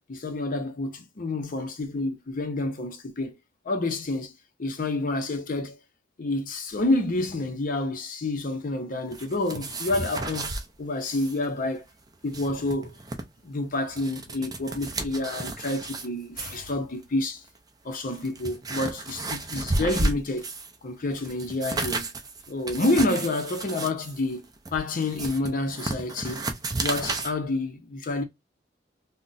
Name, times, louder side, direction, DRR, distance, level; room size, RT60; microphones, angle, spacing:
voice 1, 0.0-3.3 3.6-4.3 4.6-5.8 6.2-11.8 12.2-12.9 13.4-17.4 17.8-20.5 20.8-22.1 22.5-24.4 24.7-26.5 26.8-28.2, left 2 dB, 50° left, 0.6 m, -28 dB
sound 1, 9.1-10.6 11.0-11.4 11.6-11.7 12.1-13.2 13.7-16.1 16.4-16.7 17.5-17.6 18.1-20.8 21.1-27.3, right 2 dB, 20° right, 0.4 m, -32 dB
2.4 x 2.1 x 3.8 m
head